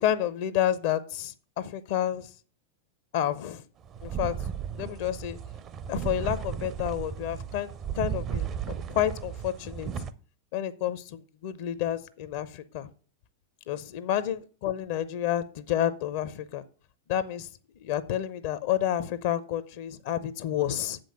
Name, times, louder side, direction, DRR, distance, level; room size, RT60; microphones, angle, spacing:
voice 1, 0.0-2.3 3.1-3.6 4.0-4.3 4.7-5.4 5.9-7.7 8.0-8.5 8.9-10.1 10.5-12.9 13.7-16.6 17.1-17.5 17.8-21.0, left 11 dB, 50° left, 15 dB, 0.6 m, -30 dB
sound 1, 3.8-10.1, right 8 dB, 30° right, 0.5 m, -35 dB
7.4 x 5.3 x 6.7 m, 0.40 s
figure-of-eight pair, 90°, 0 cm